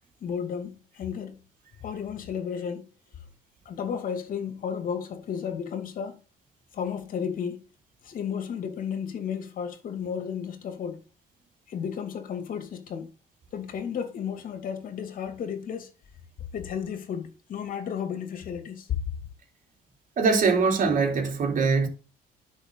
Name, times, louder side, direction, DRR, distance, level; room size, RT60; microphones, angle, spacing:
voice 1, 0.2-1.4 1.8-2.9 3.7-6.2 6.7-7.7 8.0-11.0 11.7-13.1 13.5-15.9 16.5-18.9, left 7 dB, 55° left, 2.8 m, -33 dB
voice 2, 20.2-21.9, right 4 dB, 50° right, 3.9 m, -22 dB
11.0 x 6.2 x 4.0 m
cardioid pair, 110°, 17 cm